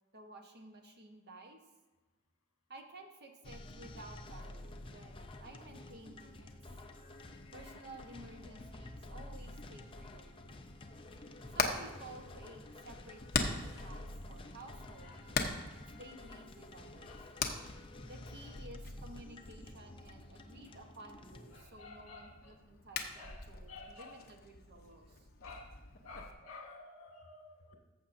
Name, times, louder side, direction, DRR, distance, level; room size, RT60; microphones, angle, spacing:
voice 1, 0.1-1.6 2.7-6.5 7.5-10.6 11.5-15.4 15.9-17.2 18.0-25.3, right 2 dB, 50° right, 3 dB, 1.1 m, -54 dB
sound 1, 3.4-21.6, left 1 dB, 25° left, 0.5 m, -50 dB
Hammer, 11.1-26.3, left 4 dB, 45° left, 0.8 m, -42 dB
voice 2, 21.5-22.3 23.1-23.4 23.7-24.2 25.4-25.7 26.0-27.7, left 3 dB, 65° left, 2 dB, 1.6 m, -51 dB
14.0 x 7.1 x 2.6 m, 1.2 s
head